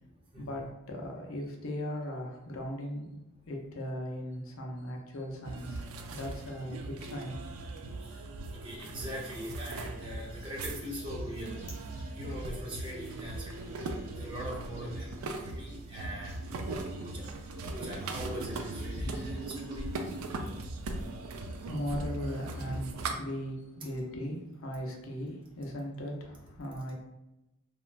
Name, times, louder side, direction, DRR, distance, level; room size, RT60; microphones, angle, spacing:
voice 1, 0.4-3.2 3.5-5.8 6.1-7.4 21.2-26.9, equal, 65° left, 1 dB, 0.5 m, -38 dB
sound 1, 5.4-23.2, right 2 dB, 80° right, 0.3 m, -39 dB
voice 2, 8.5-11.6 12.1-13.5 13.8-16.3 17.0-17.2 17.7-19.9, equal, 25° right, -4 dB, 0.7 m, -42 dB
sound 2, 10.2-20.2, left 1 dB, 35° left, 0.9 m, -48 dB
3.0 x 2.3 x 2.4 m, 0.92 s
head